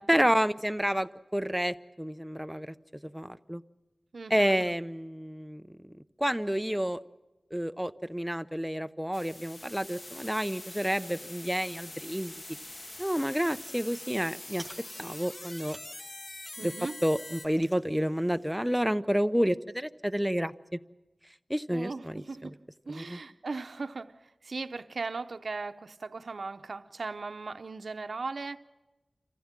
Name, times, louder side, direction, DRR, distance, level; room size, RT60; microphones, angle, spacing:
voice 1, 0.1-2.7 3.0-3.6 4.3-7.0 7.5-12.4 13.0-14.7 15.0-15.8 16.6-16.7 17.0-20.8 21.5-22.5 22.9-23.2, equal, 5° right, 11 dB, 0.6 m, -30 dB
voice 2, 4.1-4.7 16.6-17.0 21.7-22.5 22.9-28.6, right 3 dB, 80° right, 9 dB, 0.7 m, -38 dB
sound 1, 9.1-17.5, left 1 dB, 45° left, 1.4 m, -44 dB
sound 2, 9.4-18.7, right 2 dB, 25° right, 2.2 m, -57 dB
27.0 x 15.0 x 7.5 m, 1.1 s
wide cardioid pair, 65°, 0 cm